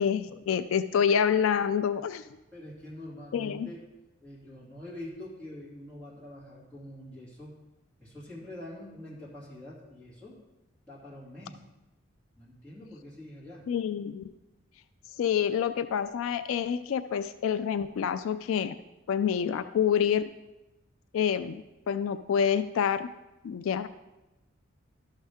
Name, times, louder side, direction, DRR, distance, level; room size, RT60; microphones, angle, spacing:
voice 1, 0.0-2.2 3.3-3.7 13.7-14.4 15.2-18.8 19.1-20.2 21.1-23.1 23.4-23.9, left 8 dB, 75° left, 12 dB, 0.3 m, -27 dB
voice 2, 2.5-3.9 4.2-7.6 8.0-10.4 10.9-11.6 12.4-13.7, left 1 dB, 5° left, -9 dB, 2.5 m, -45 dB
12.0 x 6.5 x 3.5 m, 1.0 s
head